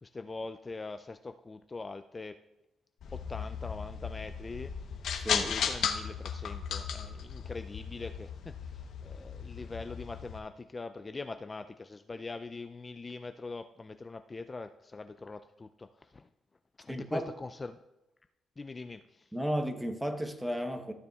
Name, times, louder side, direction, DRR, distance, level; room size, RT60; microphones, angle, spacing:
voice 1, 0.0-2.4 3.1-4.7 5.3-16.3 16.8-17.8 18.6-19.3, left 3 dB, 25° left, 9 dB, 0.3 m, -43 dB
sound 1, 3.0-10.4, left 7 dB, 70° left, 0.9 m, -36 dB
voice 2, 5.2-5.5 16.9-17.3 19.3-20.9, equal, 5° right, 7 dB, 0.9 m, -33 dB
15.0 x 6.8 x 2.4 m, 0.96 s
cardioid pair, 90°, 0 cm